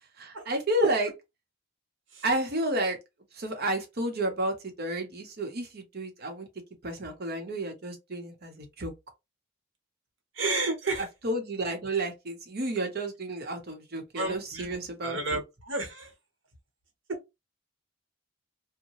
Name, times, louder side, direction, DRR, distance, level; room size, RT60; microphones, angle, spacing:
voice 1, 0.2-1.1 2.2-3.0 3.3-6.5 6.8-8.9 11.2-15.4, right 1 dB, 55° right, 0.9 m, -31 dB
voice 2, 10.3-11.1 14.1-16.1, right 2 dB, 80° right, 1.0 m, -32 dB
2.7 x 2.1 x 3.0 m
head